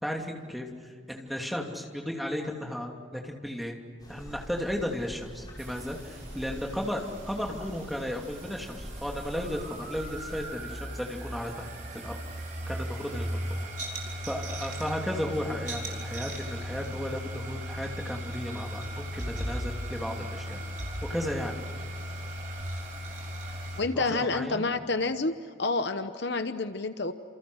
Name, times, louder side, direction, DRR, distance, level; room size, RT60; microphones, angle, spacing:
voice 1, 0.0-3.8 4.1-11.7 11.9-12.2 12.7-13.6 14.3-20.6 21.1-21.5 24.0-24.7, equal, ahead, 1 dB, 2.8 m, -34 dB
sound 1, 4.0-10.5, equal, 20° left, 5.9 m, -44 dB
sound 2, 5.6-23.8, equal, 40° right, 4.7 m, -37 dB
voice 2, 23.8-27.1, left 3 dB, 55° left, 9 dB, 1.0 m, -29 dB
29.5 x 28.0 x 6.4 m, 2.1 s
head